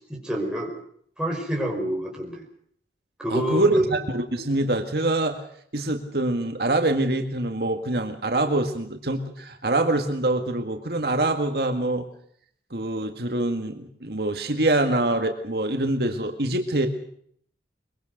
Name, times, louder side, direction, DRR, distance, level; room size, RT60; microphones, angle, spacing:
voice 1, 0.1-0.7 1.2-2.4 3.2-3.9, equal, 5° right, -1 dB, 5.2 m, -27 dB
voice 2, 3.3-5.4 5.7-12.1 12.7-16.9, right 2 dB, 60° right, 4 dB, 1.8 m, -25 dB
23.5 x 22.5 x 6.6 m, 0.66 s
head